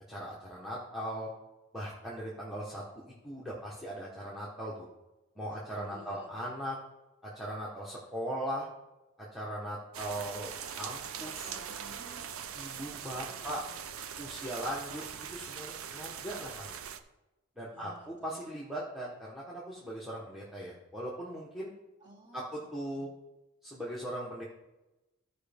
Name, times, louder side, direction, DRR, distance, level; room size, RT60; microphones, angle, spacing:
voice 1, 0.1-1.3 1.7-2.8 3.2-4.9 5.4-6.8 7.2-8.7 9.2-11.5 12.5-13.6 14.2-15.0 15.3-16.8 17.6-21.7 22.3-23.1 23.6-24.4, equal, ahead, -6 dB, 1.1 m, -39 dB
voice 2, 5.7-6.5 11.4-12.3 13.1-13.7 17.7-18.3 22.0-23.1, right 1 dB, 20° right, -4 dB, 2.4 m, -55 dB
sound 1, 9.9-17.0, right 8 dB, 75° right, 0.6 m, -42 dB
14.0 x 5.1 x 3.5 m, 1.0 s
head